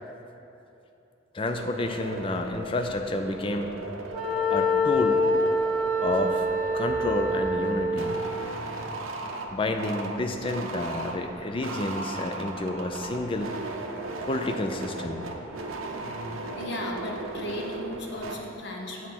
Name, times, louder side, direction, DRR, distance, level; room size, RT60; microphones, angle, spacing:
voice 1, 1.3-3.8 4.5-5.2 6.0-6.5 6.7-8.1 9.5-13.5 14.3-15.2, left 2 dB, 25° left, 5 dB, 0.4 m, -29 dB
sound 1, 1.4-18.4, right 2 dB, 90° right, 0.6 m, -37 dB
Wind instrument woodwind instrument, 4.1-8.3, left 1 dB, 5° right, 1.7 m, -25 dB
voice 2, 16.6-19.1, left 1 dB, 55° left, 0 dB, 0.9 m, -35 dB
7.3 x 4.3 x 5.9 m, 2.9 s
head